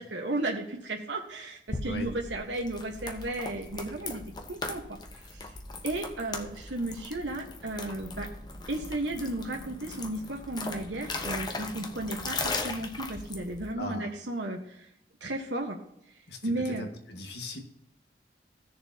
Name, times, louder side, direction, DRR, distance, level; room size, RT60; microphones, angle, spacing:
voice 1, 0.0-4.2 4.5-5.5 5.8-8.3 8.7-14.9 15.2-15.8 16.4-16.9, right 2 dB, 75° right, 1 dB, 1.3 m, -34 dB
sound 1, 1.7-13.7, left 3 dB, 25° left, 0.9 m, -38 dB
voice 2, 13.8-14.1 16.3-17.6, left 1 dB, 65° left, 3 dB, 1.7 m, -39 dB
16.5 x 6.8 x 2.8 m, 0.79 s
head